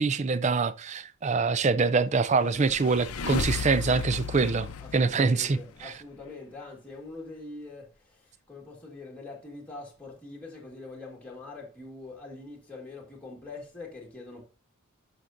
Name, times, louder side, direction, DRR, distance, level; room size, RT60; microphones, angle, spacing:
voice 1, 0.0-5.9, right 4 dB, 30° right, 0.4 m, -25 dB
sound 1, 2.3-5.9, left 5 dB, 80° left, 0.6 m, -35 dB
voice 2, 4.8-14.4, left 3 dB, 5° left, 1.6 m, -44 dB
11.0 x 5.7 x 2.6 m
head